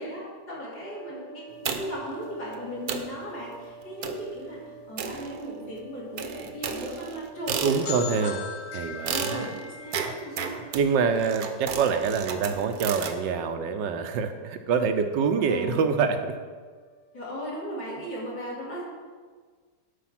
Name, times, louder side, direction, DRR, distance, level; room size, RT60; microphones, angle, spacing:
voice 1, 0.0-4.6 4.9-8.3 9.1-10.6 15.4-15.8 17.1-18.8, equal, 85° left, -6 dB, 3.7 m, -37 dB
sound 1, 0.8-18.1, right 5 dB, 45° left, 1.0 m, -51 dB
sound 2, 1.6-2.1 2.5-2.6 2.9-3.2 4.0-4.3 5.0-5.7 6.2-8.2 9.1-13.2, right 7 dB, 65° right, 1.2 m, -34 dB
voice 2, 7.6-8.4 8.7-9.5 10.7-16.4, right 6 dB, 85° right, 7 dB, 1.5 m, -25 dB
sound 3, 7.9-11.5, left 6 dB, 65° left, 0.8 m, -40 dB
11.5 x 5.2 x 5.9 m, 1.5 s
omnidirectional pair, 1.9 m